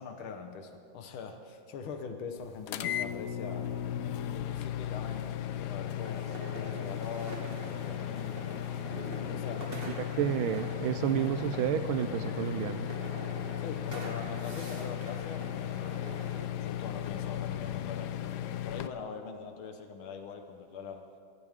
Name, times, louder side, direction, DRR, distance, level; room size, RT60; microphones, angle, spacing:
voice 1, 0.0-3.7 4.2-8.6 9.3-9.7 13.6-18.2 18.6-21.1, left 5 dB, 85° left, 6 dB, 2.0 m, -43 dB
sound 1, 2.7-18.9, left 11 dB, 70° left, 1.1 m, -36 dB
sound 2, 6.0-16.5, right 1 dB, 30° right, 2.0 m, -45 dB
voice 2, 10.2-12.9, right 10 dB, 85° right, 11 dB, 1.4 m, -30 dB
23.5 x 17.0 x 3.7 m, 2.2 s
omnidirectional pair, 2.2 m